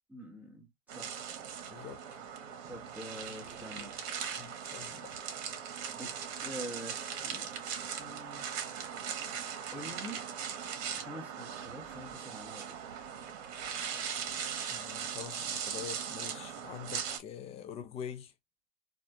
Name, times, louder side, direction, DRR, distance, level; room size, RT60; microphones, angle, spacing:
voice 1, 0.1-0.7 0.9-1.1 2.7-3.9 5.9-6.1 6.4-7.6 8.0-8.5 9.7-10.2 10.9-12.7, equal, 5° right, 1.2 m, -45 dB
sound 1, 0.9-17.2, right 8 dB, 55° right, 1.4 m, -39 dB
voice 2, 1.7-2.0 3.8-3.9 4.4-5.1 14.7-18.3, left 9 dB, 15° left, 0.4 m, -45 dB
4.2 x 2.5 x 2.6 m
hypercardioid pair, 130°, 38 cm